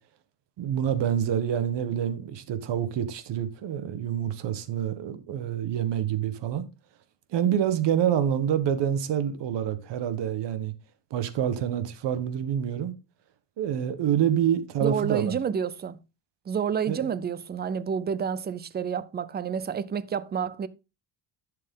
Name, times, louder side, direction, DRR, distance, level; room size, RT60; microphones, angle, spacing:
voice 1, 0.6-6.6 7.3-10.7 11.1-12.9 13.6-15.3 16.9-17.1, right 9 dB, 65° right, 1.4 m, -27 dB
voice 2, 14.8-16.0 16.5-20.7, right 7 dB, 20° right, 0.4 m, -29 dB
11.0 x 6.6 x 3.8 m
cardioid pair, 140°, 46 cm